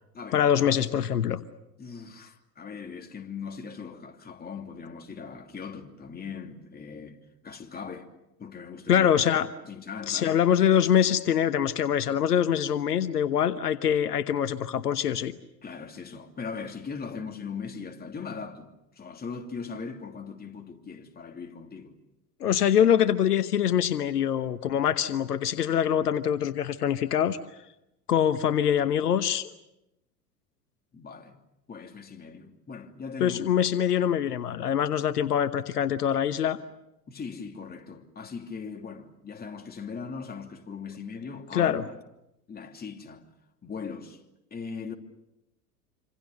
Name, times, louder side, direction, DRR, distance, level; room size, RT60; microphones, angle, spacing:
voice 1, 0.3-1.4 8.9-9.5 10.1-15.3 22.4-27.4 28.1-29.5 33.2-36.6 41.5-41.8, left 9 dB, 75° left, 1.1 m, -24 dB
voice 2, 1.8-8.1 8.4-9.1 9.6-10.4 15.6-22.0 30.9-31.4 31.7-33.7 37.1-41.9 42.5-43.3 43.6-44.2 44.5-44.9, left 5 dB, 20° left, 2.9 m, -39 dB
26.5 x 26.5 x 6.8 m
figure-of-eight pair, 85°, 47 cm